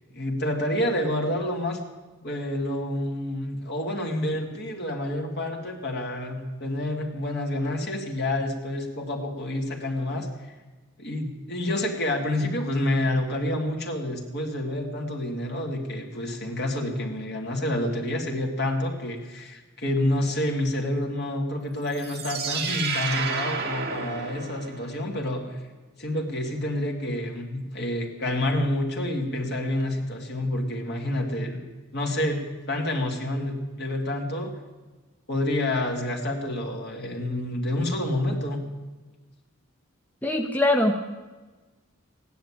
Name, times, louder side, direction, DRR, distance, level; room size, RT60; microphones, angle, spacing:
voice 1, 0.1-1.8 2.2-10.6 11.0-25.6 26.0-31.6 31.9-32.4 32.7-34.5 35.3-38.6, left 1 dB, 50° left, 1 dB, 2.5 m, -28 dB
sound 1, 21.9-25.0, right 5 dB, 50° right, 2.3 m, -31 dB
voice 2, 40.2-41.0, left 1 dB, 10° left, 2 dB, 0.8 m, -22 dB
15.0 x 10.5 x 8.8 m, 1.3 s
head